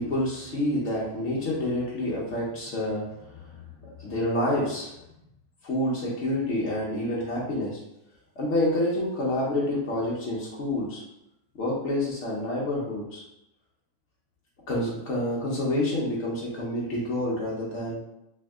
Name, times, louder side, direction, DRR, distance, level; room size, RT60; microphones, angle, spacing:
voice 1, 0.0-3.5 3.8-4.9 5.6-7.8 8.4-11.0 11.6-13.2 14.7-18.0, left 1 dB, 80° left, -5 dB, 0.6 m, -28 dB
3.4 x 2.7 x 3.4 m, 0.84 s
omnidirectional pair, 2.3 m